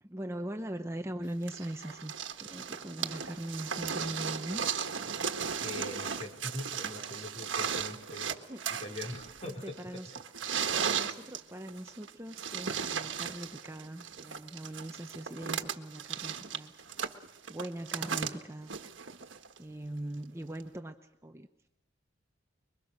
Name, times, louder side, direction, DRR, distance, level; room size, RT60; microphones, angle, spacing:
voice 1, 0.0-4.6 8.4-8.6 9.4-10.1 10.8-16.7 17.5-18.8 19.6-21.7, right 1 dB, 15° right, 5 dB, 0.9 m, -41 dB
sound 1, 1.5-19.6 20.6-20.7, right 7 dB, 75° right, 1.5 m, -36 dB
voice 2, 5.6-8.3 8.7-9.8, left 1 dB, 30° left, 1 dB, 5.1 m, -42 dB
25.5 x 23.0 x 6.6 m, 0.93 s
head